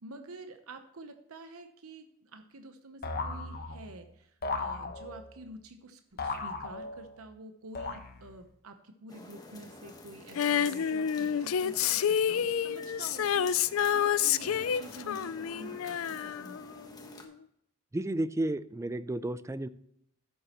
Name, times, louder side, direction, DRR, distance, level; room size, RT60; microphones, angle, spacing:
voice 1, 0.0-16.7, right 2 dB, 80° right, 7 dB, 0.9 m, -48 dB
sound 1, 3.0-4.0 4.4-5.4 6.2-7.2 7.7-8.5, left 3 dB, 45° left, 1.0 m, -37 dB
sound 2, 9.1-17.3, left 2 dB, 20° left, 1.3 m, -49 dB
Female singing, 10.4-17.0 17.3-17.4, left 8 dB, 70° left, 0.4 m, -29 dB
voice 2, 17.9-19.7, right 1 dB, 15° right, 15 dB, 0.3 m, -32 dB
11.5 x 8.3 x 3.0 m, 0.74 s
head